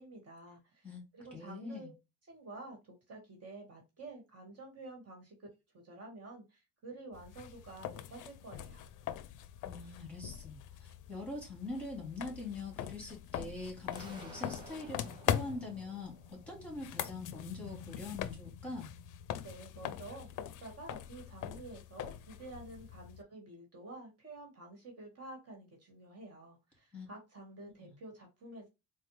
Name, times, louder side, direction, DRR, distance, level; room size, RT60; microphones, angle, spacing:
voice 1, 0.0-0.9 1.1-1.9 2.3-5.5 5.7-8.8 19.4-28.7, right 2 dB, 40° right, 1.5 m, -50 dB
voice 2, 1.3-1.9 9.6-18.9 26.9-27.1 27.7-27.9, left 2 dB, 5° left, 2.1 m, -43 dB
sound 1, 7.1-23.2, left 11 dB, 60° left, 0.5 m, -42 dB
sound 2, 13.9-16.8, right 2 dB, 10° right, 1.7 m, -53 dB
4.1 x 2.2 x 3.1 m
cardioid pair, 100°, 36 cm